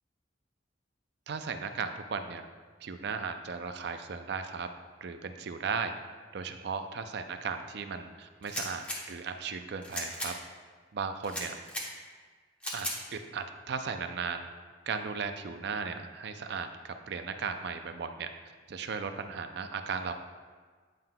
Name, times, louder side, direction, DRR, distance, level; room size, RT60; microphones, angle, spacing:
voice 1, 1.3-2.5 2.8-4.7 5.0-6.0 6.3-10.3 10.9-11.5 12.7-14.5 14.9-18.3 18.7-20.1, right 5 dB, 60° right, 8 dB, 0.4 m, -36 dB
sound 1, 8.4-9.0 9.8-10.3 11.2-11.9 12.6-13.0, equal, 5° left, 0.9 m, -36 dB
9.0 x 5.7 x 2.2 m, 1.5 s
head